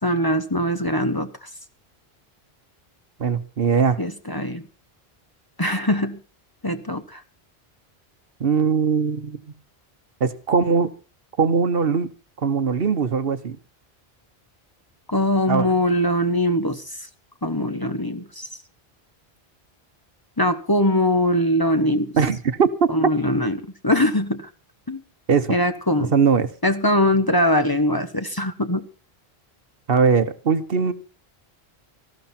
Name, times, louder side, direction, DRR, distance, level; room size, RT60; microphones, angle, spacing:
voice 1, 0.0-1.5 4.0-4.6 5.6-6.2 6.6-7.2 15.1-16.8 17.4-18.5 20.4-22.1 22.9-23.6 23.8-24.5 24.9-25.0 25.5-26.1 26.6-28.8, left 1 dB, 20° left, 1.1 m, -22 dB
voice 2, 3.2-4.0 8.4-9.4 10.2-10.9 11.4-12.1 12.4-13.6 15.5-15.7 22.1-22.9 25.3-25.5 26.0-26.5 29.9-30.9, right 6 dB, 65° right, 1.2 m, -20 dB
18.0 x 14.5 x 4.3 m
omnidirectional pair, 1.0 m